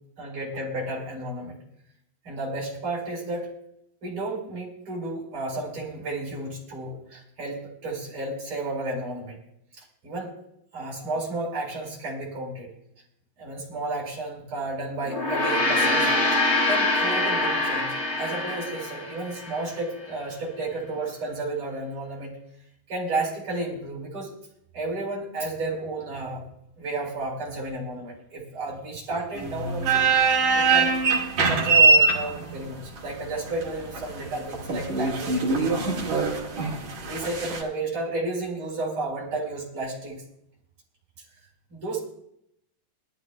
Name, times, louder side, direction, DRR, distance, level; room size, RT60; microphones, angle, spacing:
voice 1, 0.2-1.6 2.3-3.5 4.0-9.4 10.0-10.3 10.7-12.7 13.4-16.1 16.3-16.4 16.7-22.4 22.9-24.3 24.7-26.5 26.8-30.1 30.5-30.9 31.5-35.8 37.1-40.2 41.7-42.0, right 2 dB, 35° right, -3 dB, 5.3 m, -32 dB
Gong, 15.0-19.7, left 2 dB, 35° left, 1.8 m, -24 dB
sound 1, 29.3-37.6, right 4 dB, 55° right, 3.4 m, -23 dB
22.0 x 13.0 x 2.3 m, 0.75 s
omnidirectional pair, 4.0 m